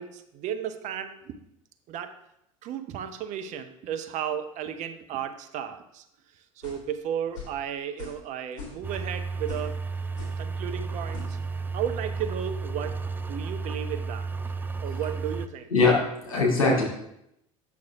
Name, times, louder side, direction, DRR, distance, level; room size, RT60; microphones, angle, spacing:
voice 1, 0.0-1.4 1.9-2.1 2.6-6.0 6.6-9.8 10.4-11.4 11.7-13.0 13.3-14.3 14.8-15.7, right 9 dB, 45° right, 8 dB, 0.7 m, -34 dB
sound 1, 6.6-6.9 7.3-7.6 8.0-8.3 8.5-9.0 9.5-9.7 10.2-10.4 11.1-11.3, left 6 dB, 60° left, 2.7 m, -42 dB
sound 2, 8.8-15.5, right 4 dB, 10° right, 0.4 m, -33 dB
voice 2, 15.7-16.8, left 3 dB, 80° left, -3 dB, 2.2 m, -21 dB
8.4 x 6.3 x 3.5 m, 0.79 s
figure-of-eight pair, 70°, 17 cm